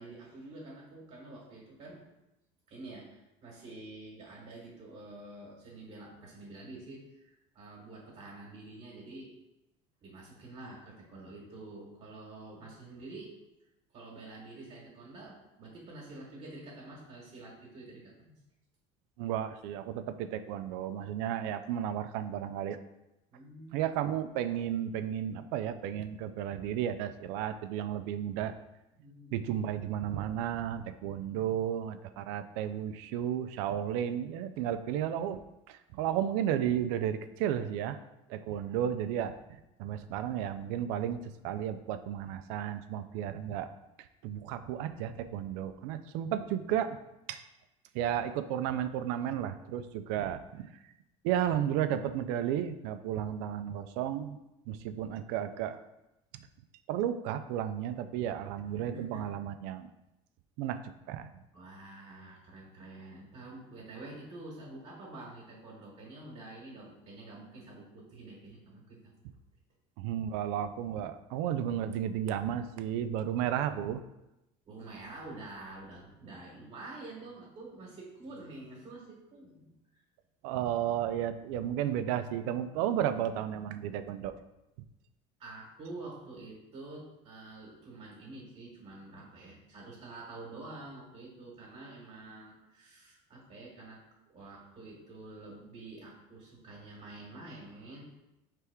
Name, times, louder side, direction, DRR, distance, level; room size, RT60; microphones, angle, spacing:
voice 1, 0.0-2.0 2.7-9.3 10.0-13.3 13.9-18.3 23.3-23.9 29.0-29.6 58.6-59.2 61.5-69.0 74.6-80.0 85.4-98.0, right 2 dB, 45° right, -2 dB, 1.3 m, -48 dB
voice 2, 19.2-22.8 23.7-28.5 29.3-35.4 35.7-38.0 38.3-39.3 39.8-43.7 44.2-47.0 47.3-47.4 47.9-50.7 51.2-54.4 54.7-55.8 56.9-59.9 60.6-60.8 61.1-61.3 70.0-74.0 80.4-84.3, right 10 dB, 80° right, 11 dB, 0.4 m, -33 dB
4.5 x 3.3 x 3.4 m, 0.92 s
supercardioid pair, 115°, 15 cm